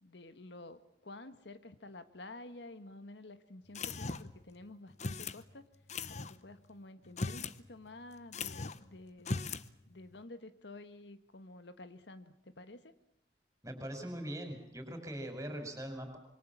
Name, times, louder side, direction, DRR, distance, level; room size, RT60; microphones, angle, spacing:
voice 1, 0.0-5.7 6.1-9.5 9.9-12.9, left 2 dB, 70° left, 11 dB, 1.4 m, -51 dB
sound 1, 3.7-4.4 5.0-5.4 5.9-6.3 7.0-7.6 7.9-8.0 8.3-8.8 9.2-9.7, left 3 dB, 40° left, 0.9 m, -38 dB
voice 2, 13.6-16.2, right 1 dB, 15° right, 6 dB, 5.5 m, -41 dB
26.5 x 23.5 x 7.3 m, 0.79 s
head